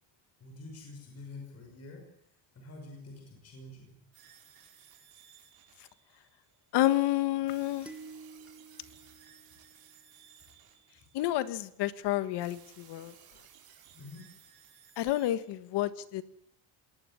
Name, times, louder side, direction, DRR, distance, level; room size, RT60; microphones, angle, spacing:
voice 1, 0.4-2.1 2.5-4.0 13.9-14.3, left 2 dB, 30° left, 2 dB, 6.0 m, -47 dB
sound 1, 4.1-6.7 7.5-11.6 12.4-15.3, right 9 dB, 50° right, 6.0 m, -58 dB
voice 2, 6.7-7.9 11.1-13.1 15.0-16.2, left 14 dB, 60° left, 14 dB, 1.5 m, -29 dB
sound 2, 7.9-10.3, right 3 dB, 5° right, 1.3 m, -51 dB
20.0 x 19.0 x 9.9 m, 0.71 s
cardioid pair, 175°, 46 cm